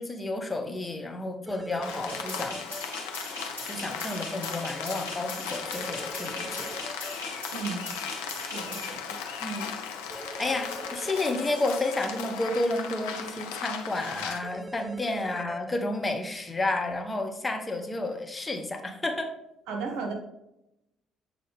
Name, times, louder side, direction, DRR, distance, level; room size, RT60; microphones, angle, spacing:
voice 1, 0.0-2.6 3.6-6.7 9.4-9.7 10.1-19.3, left 2 dB, 20° left, 4 dB, 0.8 m, -31 dB
sound 1, 1.5-2.8 5.8-7.1 10.1-11.5 14.4-15.8, right 1 dB, 15° right, 0.6 m, -42 dB
Rain, 1.8-14.4, left 6 dB, 70° left, 0.6 m, -37 dB
sound 2, 2.1-8.9, left 1 dB, 85° left, 1.7 m, -40 dB
voice 2, 7.5-8.0 8.4-9.2 19.7-20.1, right 4 dB, 60° right, 1 dB, 1.3 m, -35 dB
7.5 x 3.9 x 3.5 m, 0.86 s
figure-of-eight pair, 50°, 0 cm